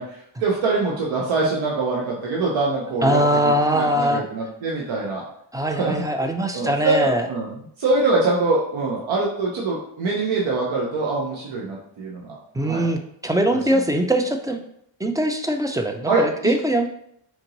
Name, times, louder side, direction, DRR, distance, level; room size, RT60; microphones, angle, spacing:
voice 1, 0.0-5.2 5.7-12.9 13.7-13.8 16.1-16.5, right 3 dB, 80° right, -3 dB, 1.0 m, -24 dB
voice 2, 3.0-4.2 5.5-7.3 12.5-14.6 15.0-16.9, right 1 dB, 10° right, 5 dB, 0.4 m, -22 dB
4.4 x 2.9 x 3.9 m, 0.71 s
cardioid pair, 95°, 46 cm